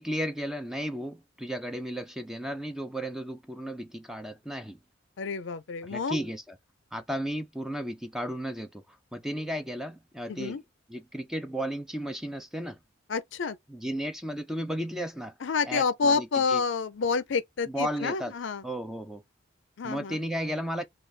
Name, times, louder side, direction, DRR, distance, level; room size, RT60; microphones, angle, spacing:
voice 1, 0.0-4.8 5.8-6.6 6.9-8.8 9.1-10.6 10.9-12.8 13.7-15.3 15.6-16.6 17.7-18.3 18.6-19.2 19.8-20.8, equal, ahead, 0.4 m, -34 dB
voice 2, 5.2-6.2 10.3-10.6 13.1-13.6 15.4-18.6 19.8-20.2, left 5 dB, 60° left, 0.4 m, -28 dB
3.3 x 2.3 x 3.9 m
head